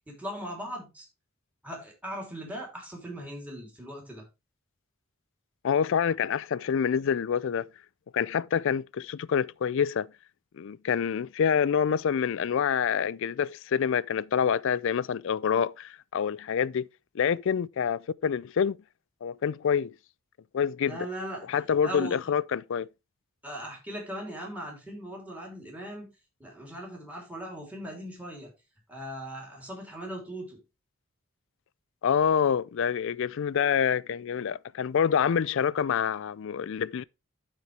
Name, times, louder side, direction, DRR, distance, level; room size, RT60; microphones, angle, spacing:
voice 1, 0.1-1.1 1.6-4.2 20.8-22.2 23.4-26.1 26.4-28.5 28.9-30.6, equal, 5° right, 3.0 m, -39 dB
voice 2, 5.6-7.7 8.1-10.1 10.6-16.9 17.1-18.8 19.2-19.9 20.5-21.0 21.5-22.9 32.0-37.0, left 7 dB, 65° left, 0.4 m, -27 dB
13.5 x 4.4 x 3.3 m
head